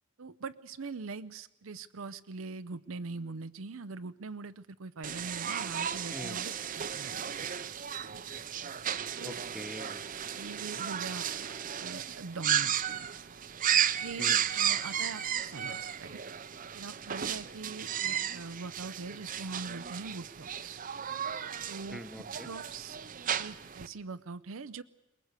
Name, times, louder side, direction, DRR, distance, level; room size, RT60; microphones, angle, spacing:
voice 1, 0.2-7.6 8.1-8.2 9.2-9.4 10.3-13.1 14.0-16.2 16.7-20.8 21.7-22.0 22.4-23.0 23.4-24.8, right 4 dB, 80° right, 11 dB, 0.7 m, -42 dB
sound 1, 5.0-23.9, right 9 dB, 40° right, 0.7 m, -34 dB
voice 2, 6.1-6.4 9.2-10.2 14.2-14.4 21.9-22.5, equal, ahead, 11 dB, 1.0 m, -44 dB
23.5 x 20.0 x 8.2 m, 1.0 s
head